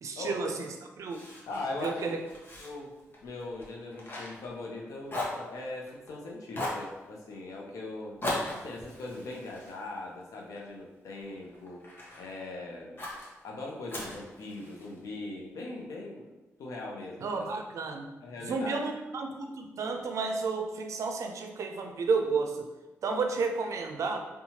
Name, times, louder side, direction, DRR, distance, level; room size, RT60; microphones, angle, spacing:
voice 1, 0.0-0.7 1.0-1.2 1.8-2.2 17.2-18.1 18.4-22.7 23.0-24.2, right 4 dB, 70° right, 4 dB, 0.4 m, -31 dB
Fire, 1.1-4.8 5.1-6.1 6.5-6.9 8.2-10.6 11.1-12.3 13.0-13.3 13.9-15.0, left 1 dB, 40° left, 0.8 m, -38 dB
voice 2, 1.5-2.2 2.6-2.9 3.2-8.2 8.5-13.0 13.4-16.2 16.6-17.5 18.2-18.8 23.3-23.4, left 2 dB, 85° left, -1 dB, 0.5 m, -40 dB
2.8 x 2.2 x 2.8 m, 1.1 s
cardioid pair, 60°, 5 cm